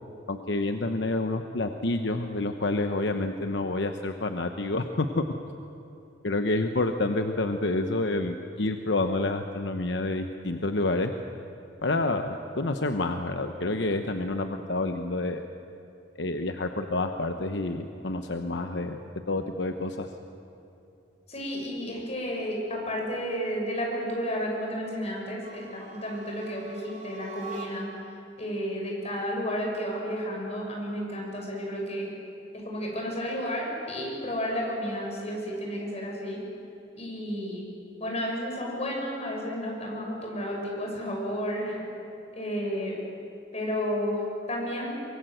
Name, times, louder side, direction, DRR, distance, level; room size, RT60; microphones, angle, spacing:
voice 1, 0.3-5.2 6.2-11.1 11.8-15.4 16.2-19.0 19.3-20.1, left 2 dB, 75° left, 6 dB, 1.0 m, -28 dB
voice 2, 21.3-27.9 28.4-32.1 32.5-36.4 36.9-37.6 38.0-41.8 42.3-43.0 43.5-44.2 44.5-44.9, equal, 35° left, -1 dB, 6.6 m, -32 dB
sound 1, 25.3-28.1, right 3 dB, 40° right, 3.2 m, -44 dB
24.0 x 23.0 x 7.9 m, 2.8 s
head